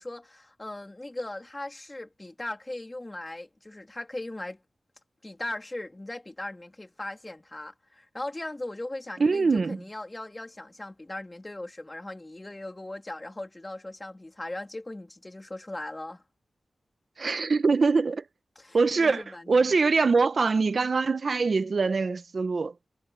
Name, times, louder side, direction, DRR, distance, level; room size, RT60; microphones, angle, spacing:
voice 1, 0.0-4.6 5.2-16.2 18.5-19.7, left 1 dB, 20° left, 3.4 m, -38 dB
voice 2, 9.2-9.8 17.2-18.2 18.7-19.2 19.5-22.7, right 4 dB, 55° right, 1.0 m, -23 dB
wide cardioid pair, 105°, 0 cm